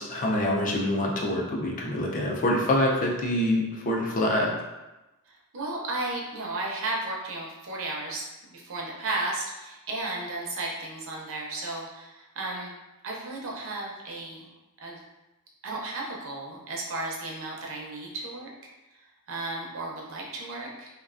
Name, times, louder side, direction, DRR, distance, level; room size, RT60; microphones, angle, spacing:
voice 1, 0.0-4.5, left 1 dB, 35° left, -2 dB, 0.4 m, -25 dB
voice 2, 5.3-12.7 13.0-14.5 14.8-15.0 15.6-18.5 19.3-20.9, right 2 dB, 60° right, -2 dB, 0.5 m, -34 dB
2.3 x 2.2 x 2.4 m, 1.0 s
head